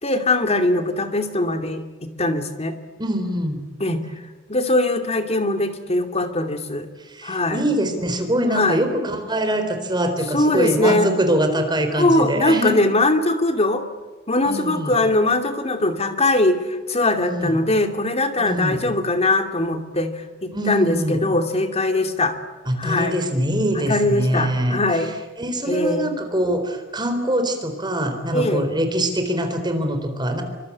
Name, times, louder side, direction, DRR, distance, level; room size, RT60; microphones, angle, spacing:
voice 1, 0.0-2.7 3.8-4.0 4.5-6.9 7.2-7.6 8.5-8.8 10.3-11.1 11.9-13.9 14.3-22.4 22.8-23.2 23.7-25.2 25.7-26.1 28.3-28.7, left 2 dB, 30° left, 7 dB, 2.7 m, -21 dB
voice 2, 3.0-3.7 7.1-12.8 14.5-14.9 17.2-17.6 18.4-18.9 20.5-21.2 22.7-24.8 25.4-30.4, right 1 dB, 20° right, 6 dB, 4.2 m, -23 dB
27.0 x 25.5 x 8.7 m, 1.3 s
head